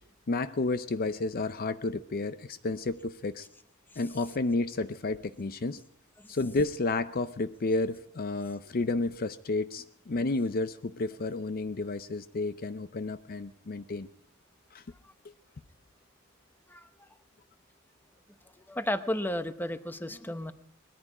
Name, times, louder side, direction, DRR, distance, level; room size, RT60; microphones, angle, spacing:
voice 1, 0.3-3.5 4.0-5.8 6.3-14.1 14.7-14.8 15.2-15.3, left 3 dB, 45° left, 12 dB, 0.5 m, -31 dB
voice 2, 16.7-17.1 18.7-20.5, left 1 dB, 10° left, 10 dB, 0.8 m, -33 dB
20.5 x 14.0 x 4.9 m, 0.68 s
head